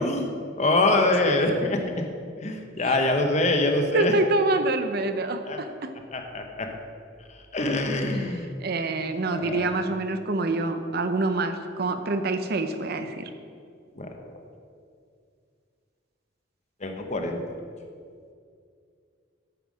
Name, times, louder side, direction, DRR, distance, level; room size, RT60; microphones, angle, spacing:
voice 1, 0.0-1.9 2.4-4.1 5.4-5.6 6.1-6.7 7.5-8.5 9.3-9.7 14.0-14.1 16.8-17.4, left 2 dB, 35° left, 4 dB, 1.0 m, -24 dB
voice 2, 3.9-5.7 8.1-13.3, right 2 dB, 55° right, 8 dB, 0.7 m, -26 dB
9.3 x 5.6 x 6.2 m, 2.3 s
head